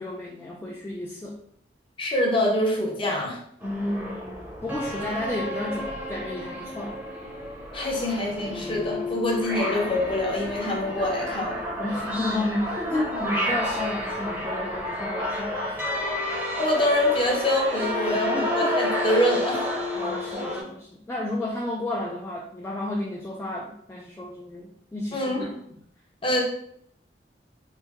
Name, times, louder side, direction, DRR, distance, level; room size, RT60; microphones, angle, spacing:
voice 1, 0.0-1.3 3.6-7.0 11.8-15.8 18.1-18.8 20.0-25.5, left 1 dB, 15° left, -2 dB, 0.3 m, -32 dB
voice 2, 2.0-3.4 7.7-11.6 12.9-13.2 16.6-19.7 25.1-25.5 26.2-26.4, left 1 dB, 30° left, -2 dB, 0.8 m, -25 dB
sound 1, 3.6-20.6, left 1 dB, 10° right, 0.7 m, -30 dB
3.2 x 2.2 x 3.4 m, 0.68 s
head